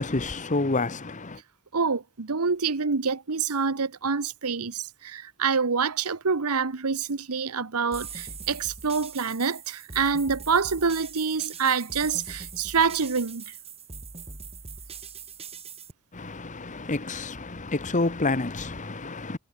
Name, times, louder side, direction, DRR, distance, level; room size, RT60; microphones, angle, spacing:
voice 1, 0.0-1.4 16.1-19.4, left 3 dB, 35° left, 1.3 m, -29 dB
voice 2, 1.7-13.5, right 5 dB, 85° right, 1.1 m, -26 dB
sound 1, 7.9-15.9, right 5 dB, 30° right, 3.1 m, -41 dB
head